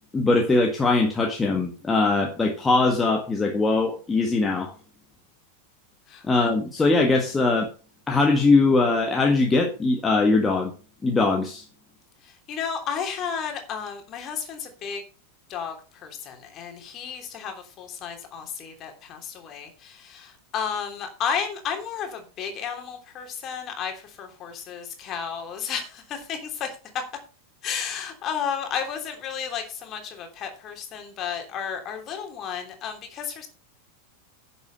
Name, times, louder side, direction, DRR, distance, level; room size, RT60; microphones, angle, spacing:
voice 1, 0.1-4.7 6.3-7.7 8.1-10.7 11.0-11.6, left 3 dB, 15° left, 2 dB, 1.6 m, -21 dB
voice 2, 12.5-15.0 15.5-15.7 16.0-26.7 27.6-33.5, left 7 dB, 30° left, 4 dB, 3.1 m, -32 dB
10.5 x 7.0 x 5.4 m, 0.36 s
figure-of-eight pair, 90°, 0 cm